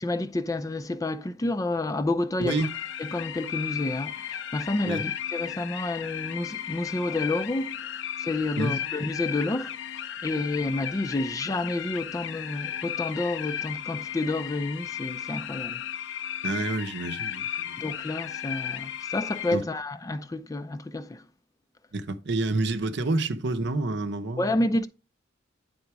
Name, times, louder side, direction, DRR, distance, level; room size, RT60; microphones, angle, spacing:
voice 1, 0.0-2.7 3.0-15.8 17.8-21.3 24.4-24.9, left 2 dB, 15° left, 0.4 m, -30 dB
voice 2, 2.4-2.7 4.8-5.0 8.6-8.7 16.4-17.7 19.5-19.7 21.9-24.5, right 2 dB, 60° right, 0.7 m, -28 dB
sound 1, 2.5-19.5, left 10 dB, 65° left, 0.5 m, -35 dB
9.6 x 3.9 x 4.7 m
head